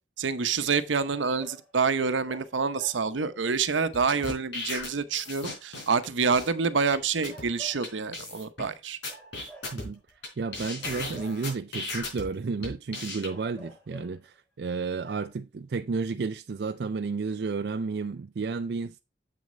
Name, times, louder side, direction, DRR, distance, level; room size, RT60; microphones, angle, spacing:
voice 1, 0.2-9.0, right 5 dB, 85° right, 0.8 m, -27 dB
sound 1, 0.9-1.7 2.2-3.3 6.7-8.0 9.1-10.2 10.8-11.8 13.3-14.3 14.7-14.8 15.0-15.3, equal, 5° left, 3.4 m, -50 dB
sound 2, 3.9-6.0 6.3-6.5 6.9-7.0 7.2-7.4 7.8-7.9 8.1-8.6 9.0-10.3 10.5-12.2 12.6-13.3, left 2 dB, 75° left, 4.0 m, -36 dB
voice 2, 10.4-19.0, right 4 dB, 60° right, 0.4 m, -32 dB
7.7 x 6.4 x 3.7 m
head